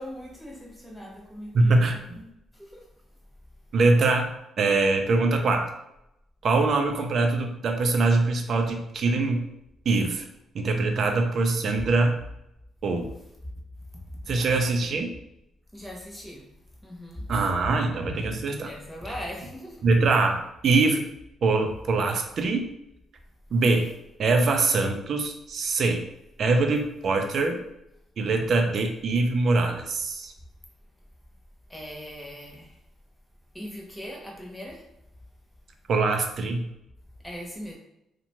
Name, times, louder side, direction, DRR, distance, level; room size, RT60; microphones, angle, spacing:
voice 1, 0.0-1.8 2.2-2.9 15.7-16.5 16.8-17.4 18.6-19.9 31.7-32.8 33.5-34.8 37.2-37.8, equal, 5° left, -2 dB, 0.8 m, -40 dB
voice 2, 1.5-2.0 3.7-4.3 4.6-5.7 6.4-9.5 9.9-10.2 10.5-12.2 12.8-13.1 14.3-15.1 17.3-18.7 19.8-21.0 21.4-22.7 23.5-23.9 24.2-26.0 26.4-27.6 28.2-30.3 35.9-36.7, right 3 dB, 55° right, 4 dB, 0.4 m, -23 dB
2.6 x 2.1 x 2.9 m, 0.83 s
cardioid pair, 90°, 0 cm